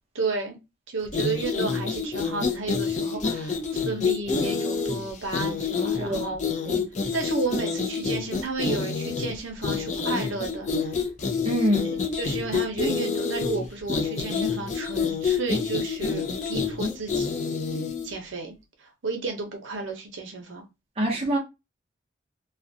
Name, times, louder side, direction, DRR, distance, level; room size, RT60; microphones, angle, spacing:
voice 1, 0.1-0.6 0.9-6.4 7.1-11.0 11.8-17.3 18.0-20.7, right 3 dB, 80° right, 0.7 m, -32 dB
sound 1, 1.1-18.1, left 5 dB, 35° left, 0.4 m, -28 dB
voice 2, 6.0-6.4 6.7-6.8 11.4-11.9 21.0-21.4, equal, 30° right, 0.6 m, -25 dB
2.4 x 2.1 x 2.6 m
head